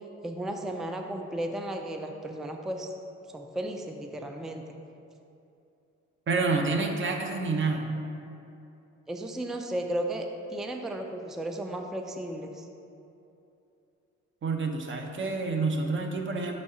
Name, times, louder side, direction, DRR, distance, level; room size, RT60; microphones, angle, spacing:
voice 1, 0.2-2.9 3.3-4.6 9.1-12.7, right 1 dB, ahead, 4 dB, 0.3 m, -34 dB
voice 2, 6.3-7.9 14.4-16.5, right 3 dB, 40° right, 3 dB, 0.8 m, -28 dB
5.6 x 4.1 x 4.8 m, 2.7 s
cardioid pair, 90°, 30 cm